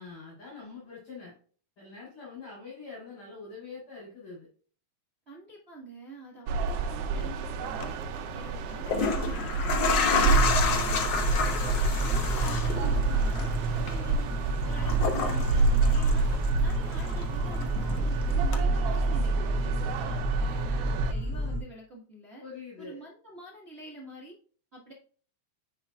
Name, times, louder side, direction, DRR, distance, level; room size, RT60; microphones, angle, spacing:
voice 1, 0.0-1.3 1.8-4.5 22.4-23.0, left 4 dB, 45° left, -6 dB, 4.4 m, -44 dB
voice 2, 5.3-7.9 8.3-11.2 11.6-13.5 13.9-14.3 14.6-16.3 16.6-17.7 17.9-22.4 22.8-24.4 24.7-24.9, right 2 dB, 35° right, -4 dB, 1.1 m, -46 dB
sound 1, 6.5-21.1, right 4 dB, 75° right, 1.4 m, -29 dB
sound 2, 7.7-7.9 8.7-16.7 17.0-18.1 18.5-18.6, left 5 dB, 90° left, 0.9 m, -30 dB
sound 3, 10.3-21.6, right 2 dB, 5° right, 1.7 m, -30 dB
9.1 x 5.6 x 2.3 m, 0.43 s
omnidirectional pair, 3.4 m